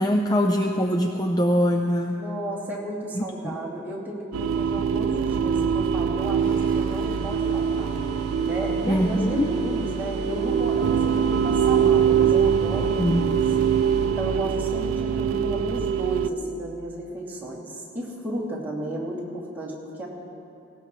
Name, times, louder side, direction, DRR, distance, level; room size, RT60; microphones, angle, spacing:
voice 1, 0.0-2.2 3.1-3.6 8.9-9.5 13.0-13.3, equal, 20° left, 3 dB, 0.5 m, -23 dB
voice 2, 2.2-7.9 8.5-13.4 14.0-20.1, right 1 dB, 10° right, -7 dB, 2.5 m, -33 dB
sound 1, 4.3-16.3, right 7 dB, 80° right, 0.4 m, -23 dB
Wind instrument woodwind instrument, 5.9-14.4, left 2 dB, 80° left, 1.3 m, -43 dB
sound 2, 6.4-14.1, left 1 dB, 45° left, 2.2 m, -42 dB
18.5 x 17.5 x 3.1 m, 2.7 s
head